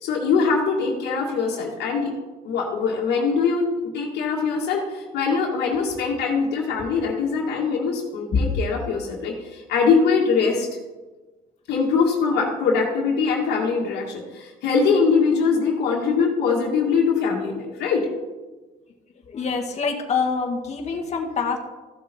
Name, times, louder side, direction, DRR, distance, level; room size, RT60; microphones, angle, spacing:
voice 1, 0.0-2.1 2.4-3.7 3.9-10.7 11.7-18.1, left 5 dB, 80° left, -3 dB, 2.0 m, -22 dB
voice 2, 19.3-21.6, left 5 dB, 40° left, 2 dB, 1.9 m, -25 dB
15.0 x 6.9 x 4.4 m, 1.2 s
cardioid pair, 110°, 17 cm